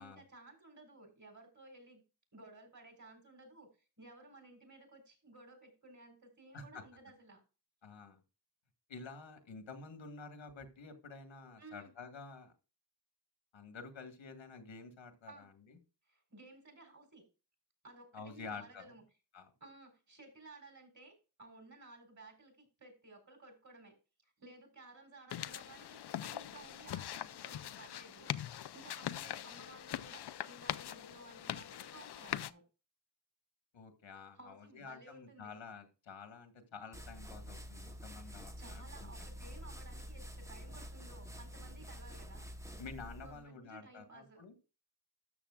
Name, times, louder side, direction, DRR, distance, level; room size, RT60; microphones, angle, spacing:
voice 1, 0.0-2.0 2.3-3.7 4.0-7.4 11.6-11.9 15.3-15.5 16.1-17.2 17.8-19.0 19.6-24.0 24.2-32.6 34.3-35.6 38.3-42.8 43.2-44.4, right 2 dB, 40° right, 4 dB, 4.2 m, -56 dB
voice 2, 7.8-8.2 8.9-12.5 13.5-15.8 18.1-19.0 19.3-19.5 33.7-39.3 42.8-44.5, left 4 dB, 85° left, 7 dB, 1.8 m, -50 dB
sound 1, 25.3-32.5, left 11 dB, 60° left, 0.5 m, -42 dB
sound 2, 36.9-43.4, equal, 5° right, 1.0 m, -48 dB
13.0 x 7.1 x 2.4 m, 0.31 s
wide cardioid pair, 105°, 45 cm